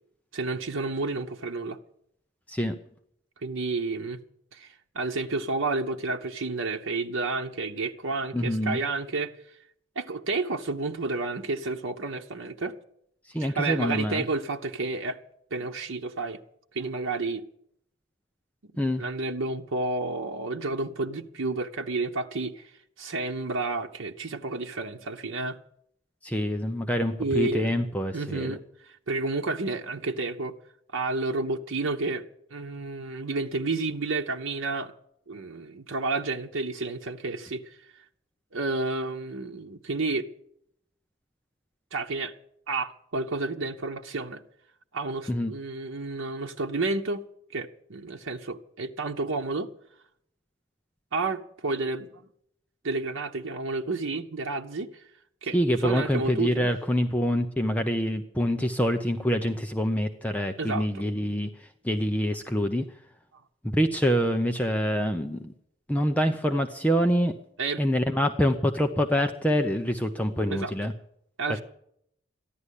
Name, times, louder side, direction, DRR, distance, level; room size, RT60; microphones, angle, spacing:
voice 1, 0.3-1.8 3.4-4.2 4.5-9.3 10.0-12.7 13.4-15.2 15.5-16.4 16.7-17.4 19.0-22.7 23.0-25.6 27.2-27.9 28.1-30.5 30.9-32.2 32.5-34.9 35.3-37.8 38.5-40.3 41.9-42.3 42.7-44.4 44.9-47.2 47.5-49.7 51.1-52.1 52.8-55.0 55.4-56.7 60.6-61.0 67.6-67.8 70.5-70.7 71.4-71.6, right 3 dB, 90° right, 0.9 m, -30 dB
voice 2, 8.3-8.8 13.3-14.2 18.8-19.0 26.2-28.6 45.3-45.5 55.5-62.8 63.6-65.5 65.9-67.3 67.8-70.9 71.5-71.6, equal, 5° left, 0.7 m, -26 dB
14.5 x 11.0 x 8.3 m
head